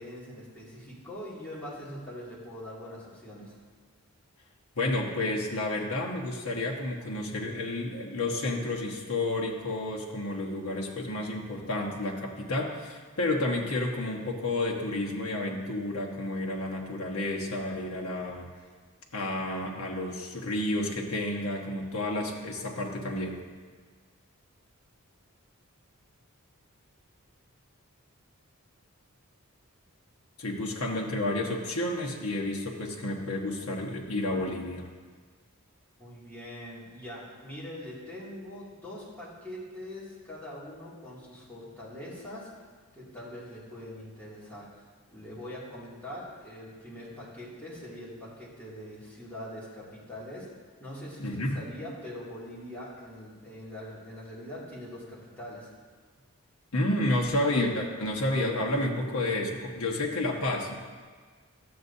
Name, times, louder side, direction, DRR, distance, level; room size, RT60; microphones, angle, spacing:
voice 1, 0.0-3.5 36.0-42.5 42.9-44.8 45.1-50.5 50.8-55.7, left 1 dB, 10° left, -9 dB, 2.4 m, -43 dB
voice 2, 4.7-18.5 19.1-23.4 30.4-34.9 51.2-51.6 56.7-60.7, left 1 dB, 65° left, -2 dB, 1.3 m, -30 dB
12.5 x 7.9 x 2.7 m, 1.5 s
head